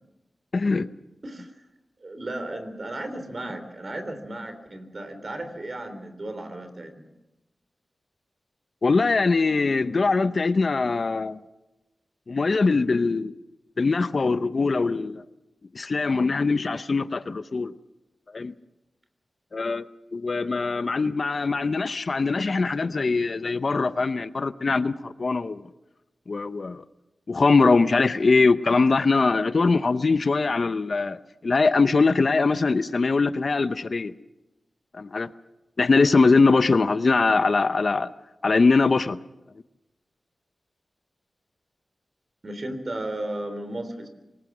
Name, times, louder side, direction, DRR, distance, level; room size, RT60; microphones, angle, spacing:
voice 1, 0.5-0.9 8.8-11.4 12.3-13.3 13.8-15.2 15.7-17.7 18.3-18.5 19.5-19.9 20.1-25.6 26.3-26.8 27.3-31.2 31.4-34.1 34.9-35.3 35.8-38.1 38.4-39.2, left 4 dB, 55° left, 0.7 m, -22 dB
voice 2, 2.0-7.1 42.4-44.1, right 1 dB, 45° right, 3.3 m, -34 dB
24.5 x 20.0 x 6.1 m
wide cardioid pair, 75°, 0 cm